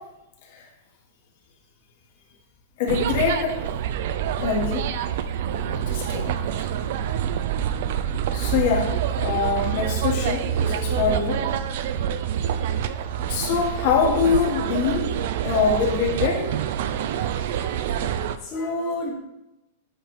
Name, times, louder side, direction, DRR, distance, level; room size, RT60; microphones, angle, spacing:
voice 1, 2.8-3.6 4.4-4.8 5.7-6.3 6.6-6.7 8.3-11.4 13.3-15.2 15.4-16.4, left 5 dB, 45° left, 0 dB, 1.4 m, -24 dB
sound 1, 2.9-18.4, right 9 dB, 50° right, 0.3 m, -26 dB
voice 2, 17.0-17.8 18.4-19.1, left 2 dB, 20° left, -6 dB, 1.0 m, -31 dB
7.8 x 3.3 x 4.6 m, 0.93 s
supercardioid pair, 180°, 0 cm